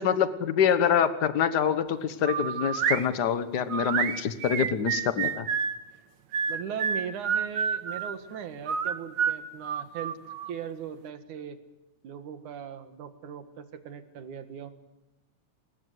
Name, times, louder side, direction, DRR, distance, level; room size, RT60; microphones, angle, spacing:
voice 1, 0.0-5.5, left 8 dB, 50° left, 11 dB, 1.4 m, -25 dB
sound 1, 2.2-3.0 3.7-5.8 6.3-8.1 8.7-10.5, right 7 dB, 55° right, 1.3 m, -29 dB
voice 2, 6.5-10.2 10.5-11.6 12.0-14.7, right 8 dB, 90° right, 9 dB, 3.1 m, -39 dB
27.5 x 20.5 x 8.0 m, 0.95 s
omnidirectional pair, 3.4 m